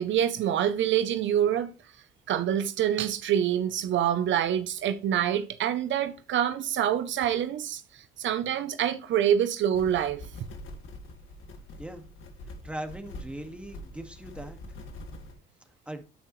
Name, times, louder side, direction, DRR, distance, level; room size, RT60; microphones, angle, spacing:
voice 1, 0.0-1.7 2.3-10.2, right 10 dB, 70° right, 0.7 m, -26 dB
sound 1, 9.7-15.3, left 1 dB, 85° left, 1.9 m, -44 dB
voice 2, 12.6-14.6 15.9-16.0, right 1 dB, 5° right, 1.9 m, -39 dB
9.6 x 8.9 x 3.2 m
cardioid pair, 90°, 20 cm